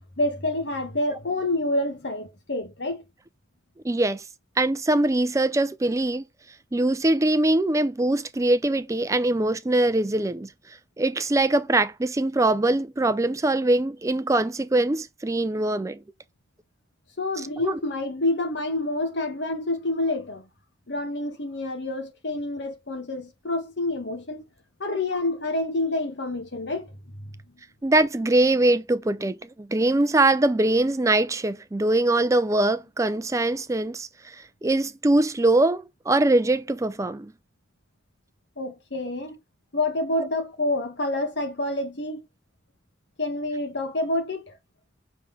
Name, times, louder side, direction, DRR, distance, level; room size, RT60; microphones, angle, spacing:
voice 1, 0.2-3.1 17.2-20.4 20.9-24.4 24.8-26.9 38.6-39.4 39.7-42.2 43.2-44.5, left 2 dB, 75° left, 1.5 m, -28 dB
voice 2, 3.8-4.2 4.6-6.2 6.7-10.5 11.0-16.0 17.6-17.8 27.8-34.4 34.6-37.3, right 2 dB, 15° right, 0.4 m, -22 dB
5.8 x 3.7 x 5.7 m
head